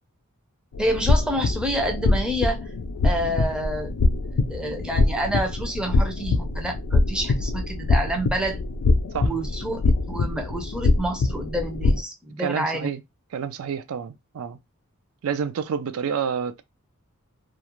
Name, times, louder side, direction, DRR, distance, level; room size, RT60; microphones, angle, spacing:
sound 1, 0.7-12.0, left 2 dB, 85° left, 0.4 m, -23 dB
voice 1, 0.8-2.7 3.0-3.9 4.5-8.6 9.2-12.9, right 1 dB, 5° right, 0.4 m, -28 dB
voice 2, 12.4-13.0 13.3-14.6 15.2-16.6, right 7 dB, 75° right, 0.4 m, -29 dB
2.4 x 2.0 x 2.9 m
head